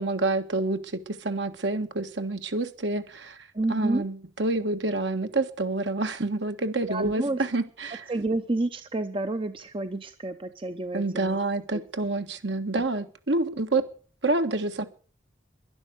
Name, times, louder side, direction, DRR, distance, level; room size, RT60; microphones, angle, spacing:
voice 1, 0.0-3.4 3.7-8.0 10.9-13.8 14.2-14.8, right 2 dB, 65° right, 7 dB, 1.6 m, -28 dB
voice 2, 3.5-4.1 6.9-7.4 8.1-11.4 11.7-11.8 12.7-12.8, right 2 dB, 25° right, 9 dB, 0.8 m, -29 dB
11.5 x 11.5 x 8.0 m, 0.42 s
head